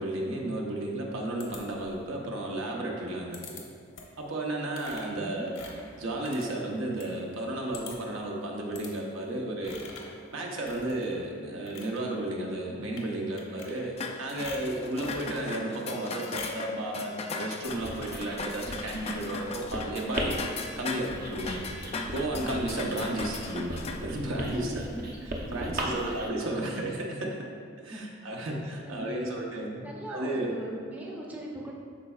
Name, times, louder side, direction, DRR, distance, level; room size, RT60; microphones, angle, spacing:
voice 1, 0.0-3.6 4.2-5.6 6.0-9.8 10.3-13.9 14.2-20.3 20.8-21.7 22.1-24.9 25.5-27.4 27.8-30.5, right 1 dB, 75° right, -1 dB, 0.9 m, -33 dB
sound 1, 1.4-2.1 3.3-3.6 3.9-4.2 4.7-7.1 7.4-7.5 7.7-8.2 8.7-8.9 9.6-10.2 10.6-11.2 11.5-12.0 12.8-13.1 13.4-14.1 14.4-15.3 16.3-16.7, left 4 dB, 75° left, 1.0 m, -45 dB
sound 2, 14.0-24.0, left 3 dB, 30° left, 0.3 m, -38 dB
Writing, 17.6-26.3, right 1 dB, 45° right, 0.7 m, -37 dB
voice 2, 24.5-25.2 25.5-26.2 26.5-26.8 27.8-28.0 28.4-28.5 28.8-29.4 29.8-31.7, right 1 dB, 10° right, -4 dB, 0.6 m, -40 dB
11.5 x 4.3 x 2.4 m, 2.2 s
head